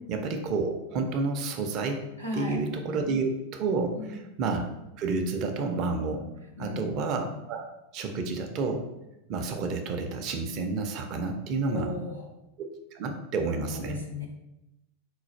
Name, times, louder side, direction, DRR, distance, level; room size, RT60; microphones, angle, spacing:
voice 1, 0.1-2.0 2.3-4.7 5.0-6.2 6.6-8.8 9.3-11.9 12.6-12.7 12.9-14.0, right 3 dB, 40° right, 4 dB, 0.5 m, -30 dB
voice 2, 2.2-2.6 4.0-4.1 6.6-6.9 11.6-12.3 13.6-14.3, left 3 dB, 85° right, -1 dB, 0.7 m, -36 dB
3.9 x 2.4 x 4.3 m, 0.92 s
figure-of-eight pair, 90°, 0 cm